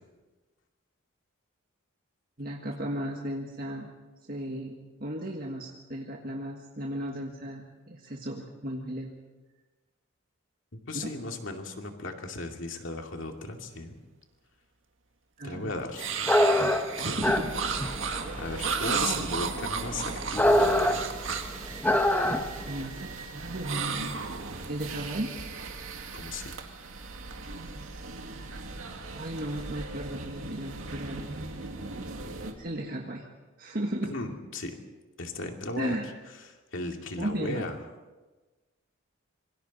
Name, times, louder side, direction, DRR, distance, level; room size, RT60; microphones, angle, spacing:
voice 1, 2.4-3.9 4.3-9.1 10.9-11.1 15.4-15.7 17.0-17.5 22.6-24.1 24.7-25.3 28.4-28.5 29.1-31.4 32.6-33.2 33.6-34.1 35.8-36.0 37.2-37.6, right 1 dB, 45° right, 0 dB, 1.6 m, -35 dB
voice 2, 10.7-14.0 15.4-16.2 17.0-17.3 18.0-21.0 26.1-26.5 34.0-34.8 35.2-36.0 36.5-37.8, left 2 dB, 65° left, 3 dB, 2.5 m, -36 dB
sound 1, 16.0-21.6 23.6-24.8, right 6 dB, 65° right, 1.7 m, -33 dB
sound 2, 16.2-22.7, left 1 dB, 10° left, 1.0 m, -25 dB
sound 3, 17.2-32.5, right 3 dB, 80° right, 2.3 m, -40 dB
26.5 x 24.0 x 4.2 m, 1.2 s
head